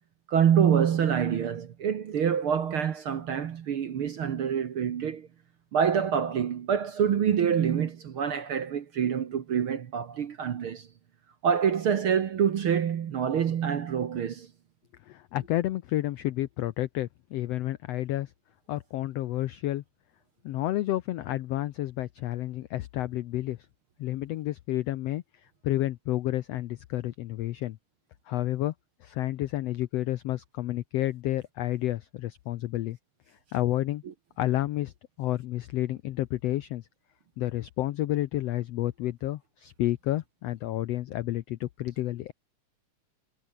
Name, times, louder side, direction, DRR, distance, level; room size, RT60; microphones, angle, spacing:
voice 1, 0.3-5.3 5.7-10.9 11.4-14.5 34.0-34.1, right 8 dB, 55° right, 1.6 m, -26 dB
voice 2, 15.1-18.3 18.7-19.8 20.4-23.6 24.0-25.2 25.6-27.8 28.3-28.7 29.0-33.0 33.5-34.0 34.4-34.9 35.2-36.9 37.4-42.3, left 15 dB, 80° left, 1.4 m, -30 dB
omnidirectional pair, 3.7 m